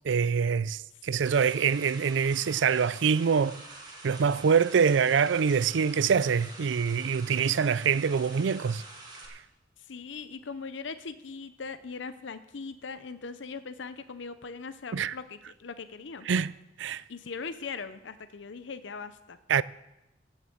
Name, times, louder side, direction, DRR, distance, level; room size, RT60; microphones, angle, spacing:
voice 1, 0.0-3.6 4.0-8.8 14.9-15.1 16.3-16.5 16.8-17.0 19.5-19.6, right 6 dB, 70° right, 0.4 m, -25 dB
sound 1, 1.2-9.3, right 2 dB, 25° right, 2.5 m, -46 dB
voice 2, 9.8-16.5 17.1-19.4, left 5 dB, 70° left, 0.7 m, -40 dB
15.5 x 7.3 x 7.8 m
head